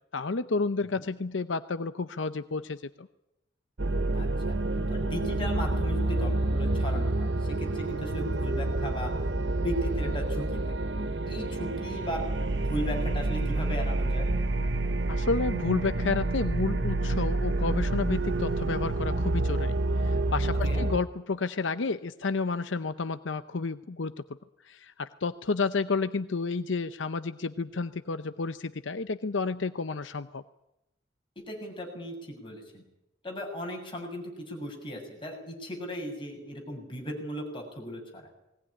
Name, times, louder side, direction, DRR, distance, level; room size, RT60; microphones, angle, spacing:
voice 1, 0.1-3.1 15.1-24.1 24.6-30.4, left 4 dB, 80° left, 11 dB, 0.7 m, -31 dB
sound 1, 3.8-21.0, right 2 dB, 65° right, 1.0 m, -28 dB
voice 2, 4.1-4.6 4.9-9.1 9.4-14.3 20.6-20.9 31.4-32.8 33.2-38.3, equal, 25° left, 1 dB, 7.1 m, -37 dB
20.5 x 18.5 x 10.0 m, 0.89 s
head